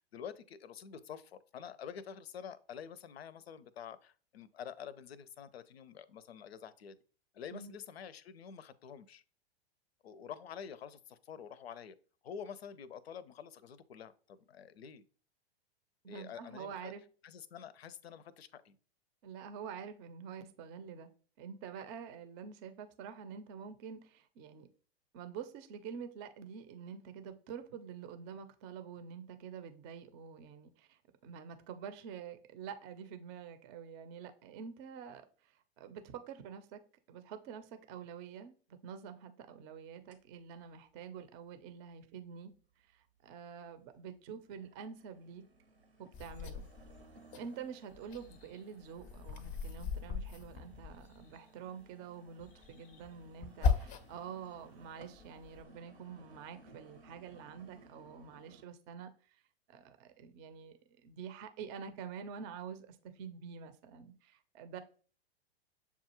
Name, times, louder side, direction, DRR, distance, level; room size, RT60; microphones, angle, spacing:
voice 1, 0.0-7.0 7.3-9.2 10.0-12.0 12.2-15.0 16.0-16.9 17.2-18.8, left 8 dB, 80° left, 0.5 m, -48 dB
voice 2, 16.0-17.0 19.2-21.1 21.4-24.7 25.1-36.8 37.1-42.5 42.8-45.4 46.0-46.7 47.4-59.4 59.7-64.8, right 7 dB, 35° right, 0.5 m, -47 dB
sound 1, 40.1-40.2 40.7-40.8 41.5-41.6 42.8-42.9 43.3-43.9 44.2-58.6, right 2 dB, 90° right, 0.9 m, -61 dB
sound 2, 46.1-47.4 47.8-51.4 52.4-54.3 54.7-55.6, left 5 dB, 25° left, 0.5 m, -38 dB
6.9 x 2.4 x 2.9 m
hypercardioid pair, 105°, 31 cm